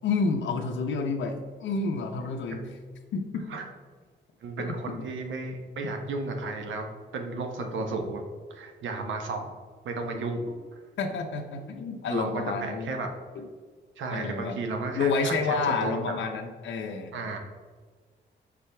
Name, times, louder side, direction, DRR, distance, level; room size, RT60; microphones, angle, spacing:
voice 1, 0.0-2.6 3.1-3.4 4.7-4.9 11.0-12.9 13.4-13.5 14.1-14.6 14.9-17.1, left 4 dB, 85° left, 3 dB, 0.7 m, -29 dB
voice 2, 4.4-8.2 8.5-9.5 9.8-10.8 11.5-11.6 12.1-13.1 14.0-16.0 17.1-17.4, right 3 dB, 90° right, 4 dB, 0.9 m, -33 dB
6.7 x 4.8 x 3.3 m, 1.5 s
wide cardioid pair, 175°, 19 cm